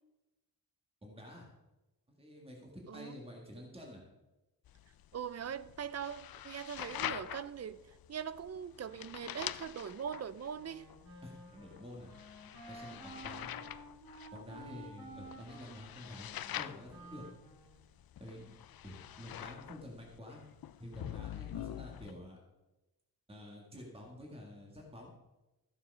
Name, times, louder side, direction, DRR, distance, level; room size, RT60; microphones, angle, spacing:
voice 1, 1.0-1.5 2.2-4.0 11.2-12.1 12.7-13.5 14.3-17.3 18.2-18.6 18.8-20.4 20.8-22.4 23.3-25.1, left 1 dB, 15° right, -1 dB, 1.8 m, -49 dB
sound 1, 4.7-22.1, left 11 dB, 75° left, 0.5 m, -46 dB
voice 2, 5.1-7.8 8.1-10.9, right 8 dB, 45° right, 16 dB, 0.5 m, -41 dB
Wind instrument woodwind instrument, 10.6-17.9, right 1 dB, 80° right, 2.8 m, -52 dB
14.0 x 7.1 x 5.5 m, 1.0 s
wide cardioid pair, 175°, 36 cm